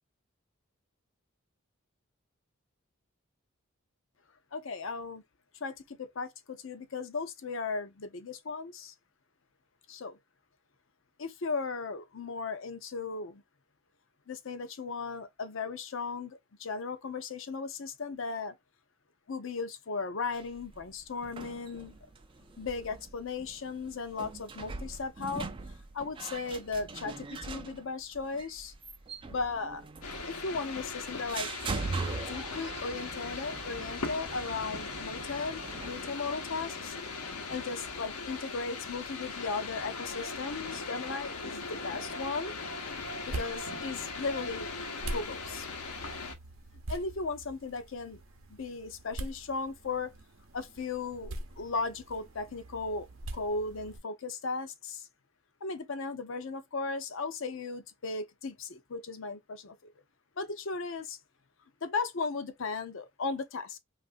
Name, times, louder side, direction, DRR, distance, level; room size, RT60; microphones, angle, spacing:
voice 1, 4.5-5.2 5.6-8.9 9.9-10.2 11.2-13.4 14.3-18.5 19.3-21.9 22.6-25.5 25.9-28.7 29.3-29.8 30.3-31.5 32.3-37.0 37.5-42.6 43.3-44.7 45.1-45.7 46.9-48.2 48.5-50.1 50.5-53.1 53.3-55.1 55.6-59.9 60.4-61.2 61.8-63.8, left 4 dB, 60° left, 0.6 m, -36 dB
sound 1, 20.3-36.0, right 3 dB, 25° right, 0.4 m, -42 dB
sound 2, 30.0-46.4, left 4 dB, 90° left, 0.9 m, -39 dB
sound 3, 42.9-54.0, right 1 dB, 65° right, 0.7 m, -44 dB
3.1 x 2.5 x 2.5 m
head